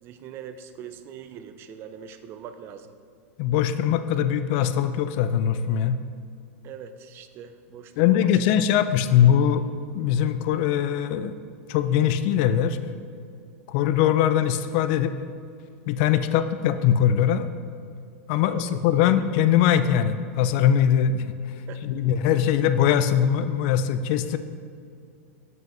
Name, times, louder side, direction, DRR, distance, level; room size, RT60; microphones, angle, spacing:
voice 1, 0.0-3.0 6.6-8.3 16.3-16.5 18.4-19.1 21.7-22.0, right 8 dB, 35° right, 10 dB, 0.4 m, -42 dB
voice 2, 3.4-6.0 8.0-9.7 9.9-11.4 11.7-12.8 13.7-15.1 15.9-17.5 18.3-21.2 21.8-24.4, left 9 dB, 50° left, 11 dB, 0.4 m, -21 dB
7.4 x 5.4 x 3.0 m, 2.4 s
supercardioid pair, 135°, 7 cm